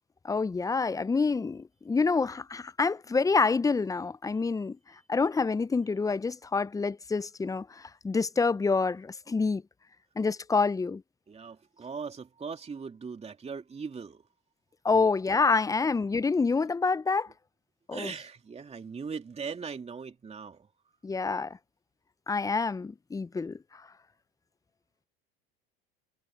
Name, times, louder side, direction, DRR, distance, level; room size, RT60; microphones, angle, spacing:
voice 1, 0.2-4.8 5.1-9.6 10.2-11.0 14.8-17.3 17.9-18.1 21.0-21.6 22.3-23.9, left 4 dB, 10° left, 0.7 m, -27 dB
voice 2, 11.3-14.2 17.9-20.7, right 5 dB, 20° right, 2.9 m, -39 dB
hypercardioid pair, 85°, 29 cm